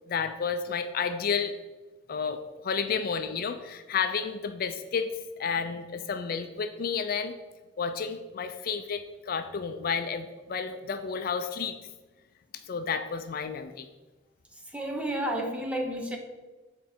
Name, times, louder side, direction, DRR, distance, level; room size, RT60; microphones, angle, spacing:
voice 1, 0.1-1.5 2.1-5.1 5.4-7.3 7.8-11.8 12.7-13.9, left 6 dB, 50° left, 8 dB, 0.4 m, -31 dB
voice 2, 14.7-16.2, right 1 dB, 5° right, 2 dB, 0.7 m, -31 dB
7.3 x 4.4 x 4.3 m, 1.2 s
head